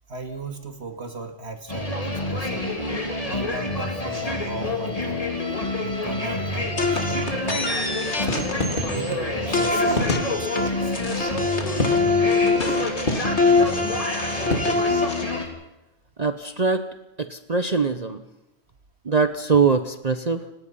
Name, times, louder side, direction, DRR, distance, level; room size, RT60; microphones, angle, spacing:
voice 1, 0.1-2.7 3.2-5.2 5.8-7.8 8.2-8.5 8.9-10.9, right 3 dB, 60° right, 6 dB, 2.4 m, -36 dB
sound 1, 1.7-15.5, left 2 dB, 30° left, 3.4 m, -28 dB
sound 2, 6.8-9.1 9.5-15.2, left 3 dB, 65° left, 2.9 m, -24 dB
sound 3, 8.1-14.6, left 2 dB, 45° left, 3.0 m, -29 dB
voice 2, 16.2-16.8 17.2-18.2 19.0-20.4, right 5 dB, 35° right, 9 dB, 1.0 m, -22 dB
29.5 x 17.5 x 5.6 m, 0.94 s
omnidirectional pair, 1.2 m